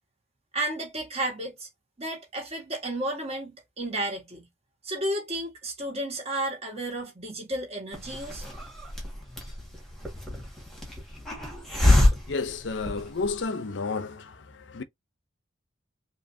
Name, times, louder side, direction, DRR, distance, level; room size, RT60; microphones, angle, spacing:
voice 1, 0.5-1.7 2.0-4.5 4.8-8.4, right 1 dB, 30° right, 2.0 m, -32 dB
Hiss, 7.9-13.4, left 1 dB, ahead, 1.7 m, -27 dB
voice 2, 12.3-14.8, left 4 dB, 65° left, 0.6 m, -31 dB
4.8 x 2.9 x 2.7 m
head